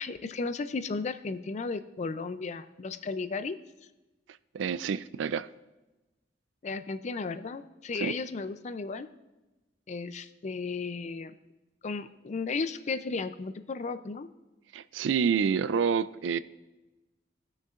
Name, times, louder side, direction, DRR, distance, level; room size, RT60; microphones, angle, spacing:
voice 1, 0.0-3.6 6.6-9.1 9.9-11.3 11.8-14.3, left 4 dB, 40° left, 11 dB, 0.4 m, -34 dB
voice 2, 4.5-5.5 7.9-8.1 14.7-16.4, right 6 dB, 90° right, 16 dB, 0.3 m, -28 dB
18.0 x 6.4 x 2.4 m, 1.1 s
head